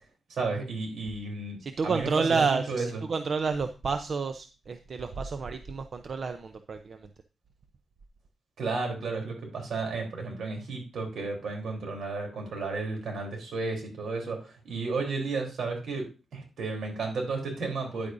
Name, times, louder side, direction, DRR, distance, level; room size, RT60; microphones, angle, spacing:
voice 1, 0.3-3.0 8.6-16.0 16.3-18.1, right 3 dB, 85° right, 2 dB, 3.6 m, -33 dB
voice 2, 1.6-7.1, right 5 dB, 55° right, 8 dB, 0.7 m, -30 dB
10.5 x 8.5 x 2.7 m, 0.31 s
cardioid pair, 95°, 0 cm